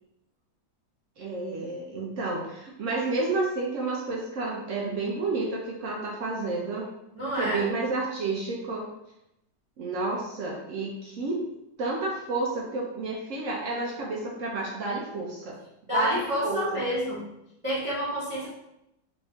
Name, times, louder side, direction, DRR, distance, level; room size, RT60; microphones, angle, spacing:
voice 1, 1.2-6.9 7.4-8.9 9.8-11.4 11.8-15.6 15.9-16.8, right 3 dB, 75° right, -2 dB, 0.7 m, -30 dB
voice 2, 7.1-7.7 15.9-17.2 17.6-18.5, equal, 35° right, -10 dB, 0.5 m, -28 dB
3.5 x 2.5 x 3.4 m, 0.84 s
omnidirectional pair, 2.0 m